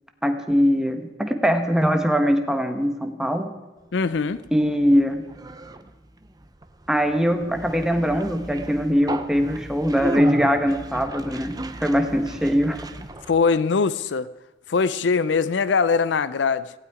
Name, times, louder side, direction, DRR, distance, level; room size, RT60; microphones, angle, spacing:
voice 1, 0.2-3.5 4.5-5.2 6.9-12.8, equal, 5° right, 1.2 m, -22 dB
voice 2, 3.9-4.4 13.3-14.3 14.7-16.7, left 5 dB, 70° left, 0.5 m, -22 dB
Conversation, 4.0-13.5, right 2 dB, 20° right, 0.8 m, -35 dB
17.0 x 16.0 x 4.9 m
head